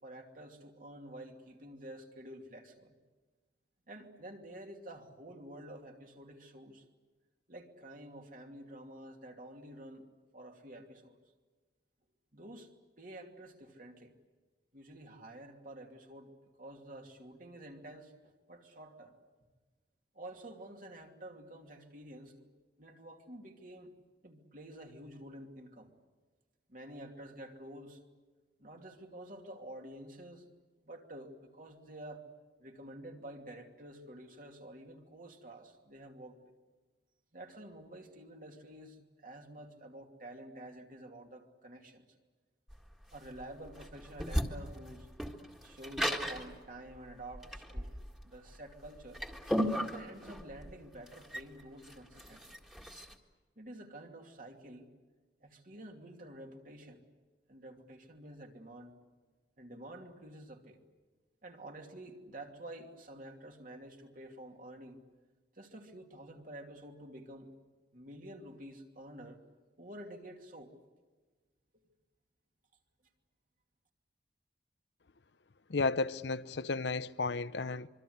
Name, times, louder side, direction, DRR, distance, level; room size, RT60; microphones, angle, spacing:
voice 1, 0.0-3.0 3.9-6.8 7.5-10.1 10.3-11.2 12.3-12.7 13.0-14.1 14.7-16.3 16.6-18.1 18.5-19.2 20.1-22.5 22.8-23.9 24.2-25.9 26.7-28.0 28.6-30.5 30.8-32.3 32.6-36.5 37.3-42.0 43.1-45.1 45.6-47.9 48.2-49.2 49.7-52.6 53.6-54.9 55.4-57.0 57.5-58.9 59.6-60.8 61.4-65.0 65.5-67.5 67.9-69.4 69.8-70.7, right 1 dB, 50° right, 2.7 m, -49 dB
sound 1, 42.7-53.1, equal, 5° right, 1.9 m, -37 dB
voice 2, 75.7-77.9, left 3 dB, 85° left, 0.8 m, -33 dB
25.0 x 24.5 x 8.0 m
head